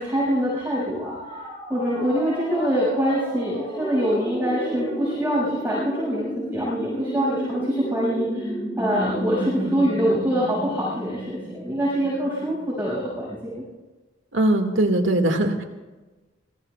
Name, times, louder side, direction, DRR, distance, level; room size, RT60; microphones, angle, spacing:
voice 1, 0.0-13.6, equal, 10° right, -10 dB, 6.4 m, -25 dB
sound 1, 0.9-12.7, right 1 dB, 15° left, 6.8 m, -32 dB
voice 2, 14.3-15.6, right 1 dB, 80° right, 4 dB, 2.0 m, -20 dB
26.5 x 21.0 x 2.4 m, 1.2 s
head